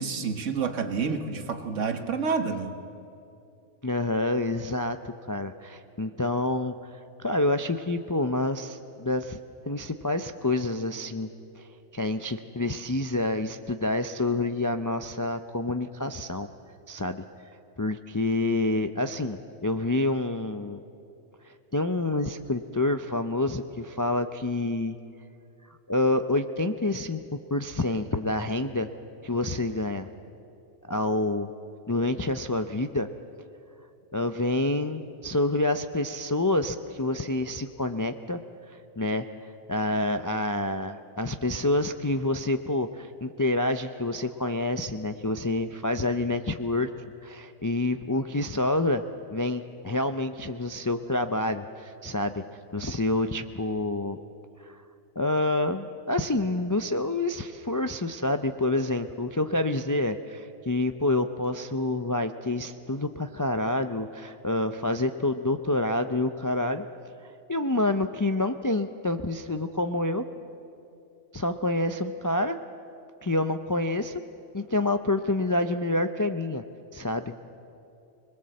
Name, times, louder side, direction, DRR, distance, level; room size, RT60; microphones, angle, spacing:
voice 1, 0.0-2.7, right 5 dB, 70° right, 7 dB, 1.6 m, -29 dB
voice 2, 3.8-6.7 7.2-9.4 9.7-11.3 11.6-11.7 11.9-16.5 16.9-17.2 17.8-20.8 21.4-25.0 25.9-27.2 27.5-28.9 29.2-30.1 30.9-31.5 31.9-33.1 34.1-38.4 38.7-39.3 39.7-46.9 47.2-49.0 49.3-52.4 52.7-54.2 54.6-54.8 55.2-66.8 67.5-70.2 71.3-72.6 73.2-74.2 74.5-76.6 76.9-77.4, left 2 dB, 30° left, 8 dB, 0.3 m, -27 dB
26.0 x 20.5 x 7.7 m, 2.6 s
omnidirectional pair, 1.3 m